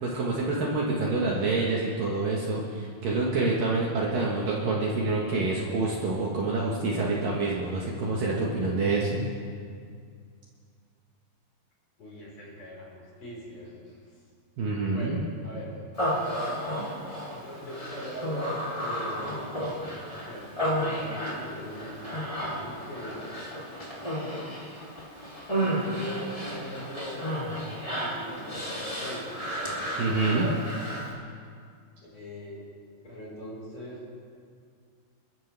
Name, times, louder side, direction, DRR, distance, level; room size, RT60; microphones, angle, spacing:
voice 1, 0.0-9.2 14.6-15.2 30.0-30.4, right 3 dB, 60° right, -4 dB, 2.7 m, -27 dB
voice 2, 12.0-14.0 14.9-16.9 17.3-23.3 25.6-27.3 27.6-29.3 29.6-30.6 32.1-32.6 33.0-34.1, equal, 35° left, -5 dB, 5.5 m, -41 dB
Human voice, 15.9-31.1, equal, 10° left, 2.0 m, -33 dB
28.5 x 13.5 x 3.4 m, 2.2 s
omnidirectional pair, 5.1 m